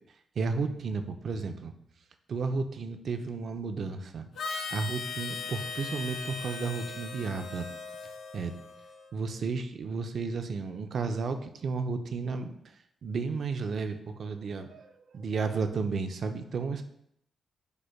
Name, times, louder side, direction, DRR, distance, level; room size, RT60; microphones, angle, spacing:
voice 1, 0.4-1.7 2.3-4.3 4.7-7.6 8.3-8.5 9.1-12.5 13.0-16.8, right 4 dB, 55° right, 8 dB, 0.4 m, -33 dB
Harmonica, 4.3-9.1, left 5 dB, 85° left, 0.5 m, -39 dB
5.1 x 2.1 x 4.5 m, 0.73 s
wide cardioid pair, 135°, 0 cm